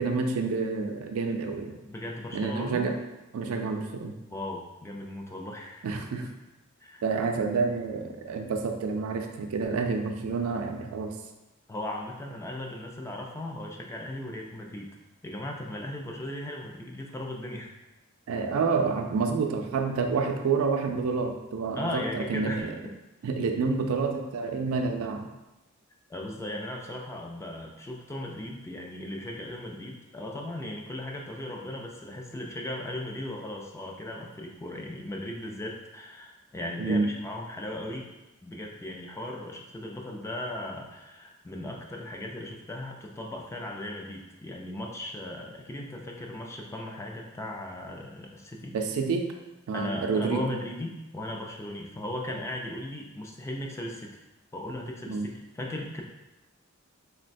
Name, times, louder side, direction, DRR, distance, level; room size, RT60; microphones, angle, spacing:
voice 1, 0.0-1.8 2.3-3.0 3.3-4.1 5.8-6.3 7.0-11.1 18.3-22.7 23.2-25.3 36.8-37.1 48.7-49.3 49.7-50.4 55.1-55.3, right 4 dB, 80° right, 4 dB, 0.4 m, -28 dB
voice 2, 1.9-2.9 4.3-6.0 6.8-7.0 11.7-14.9 15.2-17.7 21.7-22.7 26.1-38.1 38.4-48.7 49.7-54.1 54.5-55.3 55.5-56.0, left 1 dB, 15° left, 0 dB, 0.3 m, -37 dB
3.9 x 2.1 x 2.5 m, 1.0 s
head